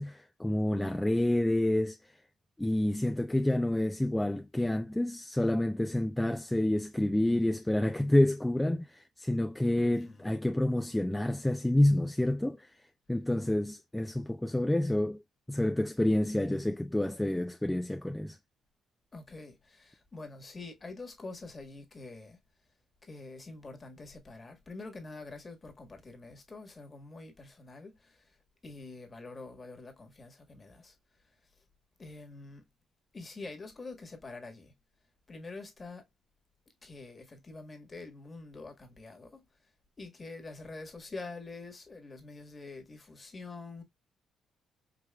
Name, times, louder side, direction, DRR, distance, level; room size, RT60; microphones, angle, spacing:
voice 1, 0.0-2.1 2.6-12.8 13.1-15.2 15.5-18.4, left 1 dB, 10° left, 0.4 m, -28 dB
voice 2, 9.8-10.3 19.1-22.4 23.0-28.3 28.6-30.9 32.0-32.6 33.1-34.7 35.3-36.1 36.8-39.4 40.0-43.8, left 3 dB, 30° left, 1.5 m, -46 dB
5.0 x 3.1 x 2.3 m
cardioid pair, 90°, 0 cm